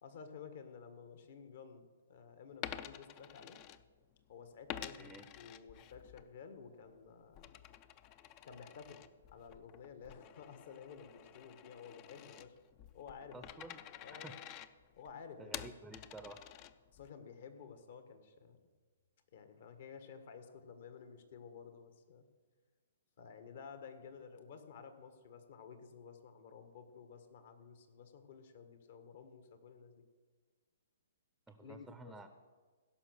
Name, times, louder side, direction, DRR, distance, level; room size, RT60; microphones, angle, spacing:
voice 1, 0.0-3.6 4.3-7.5 8.4-9.0 9.3-12.5 12.9-14.4 15.0-15.7 16.9-18.6 19.3-22.3 23.2-30.0 31.6-32.3, left 6 dB, 60° left, 8 dB, 1.6 m, -53 dB
Coin (dropping), 2.5-4.2 4.7-6.3 6.6-17.1, left 11 dB, 35° left, 0.5 m, -50 dB
voice 2, 13.3-13.8 14.1-14.4 15.4-16.5 31.5-32.3, right 3 dB, 5° right, 9 dB, 0.6 m, -51 dB
16.0 x 6.1 x 6.5 m, 1.4 s
hypercardioid pair, 130°, 0 cm